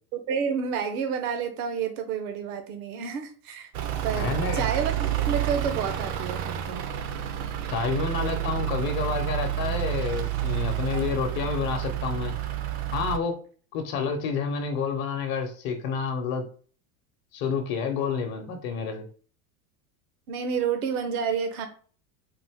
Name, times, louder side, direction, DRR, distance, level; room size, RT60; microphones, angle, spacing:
voice 1, 0.1-3.7 4.0-6.9 20.3-21.7, right 6 dB, 75° right, 7 dB, 0.9 m, -29 dB
Truck / Idling, 3.7-13.2, right 12 dB, 40° right, 0.5 m, -29 dB
voice 2, 4.1-4.6 7.7-12.3 12.9-13.4 13.7-16.4 17.3-19.0, left 6 dB, 50° left, 5 dB, 0.8 m, -29 dB
3.9 x 2.5 x 3.5 m, 0.42 s
supercardioid pair, 130°, 44 cm